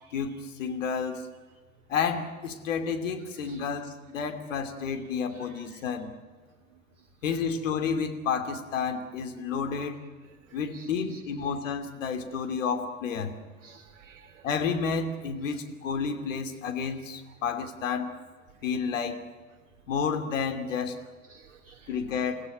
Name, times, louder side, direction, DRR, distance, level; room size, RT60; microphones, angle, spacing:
voice 1, 0.1-1.3 1.9-6.1 7.2-10.0 10.5-13.3 14.4-18.1 18.6-19.2 19.9-21.0 21.9-22.4, left 6 dB, 60° left, 2.8 m, -30 dB
voice 2, 10.7-11.2 13.6-14.5 21.3-21.9, right 6 dB, 60° right, 1.2 m, -53 dB
29.0 x 16.0 x 9.0 m
figure-of-eight pair, 85°, 42 cm